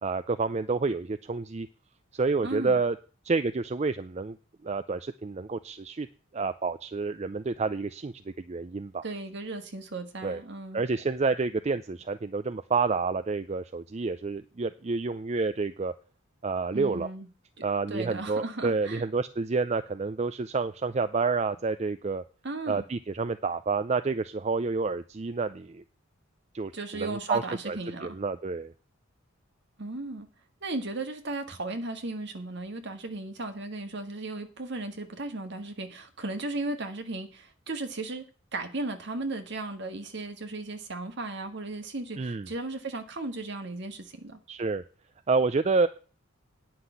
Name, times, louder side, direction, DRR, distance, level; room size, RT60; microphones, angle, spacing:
voice 1, 0.0-1.7 2.1-3.0 3.2-4.4 4.6-6.1 6.3-8.1 8.5-9.0 10.2-10.4 10.7-15.9 16.4-17.1 17.6-22.2 22.7-25.8 26.5-28.7 42.2-42.5 44.5-44.8 45.3-45.9, right 4 dB, 30° right, 0.4 m, -29 dB
voice 2, 2.4-2.8 9.0-10.8 16.7-17.3 17.6-19.1 22.4-22.8 26.7-28.2 29.8-30.3 30.6-38.2 38.5-44.4, right 2 dB, 55° right, 1.7 m, -36 dB
9.7 x 5.9 x 8.2 m
head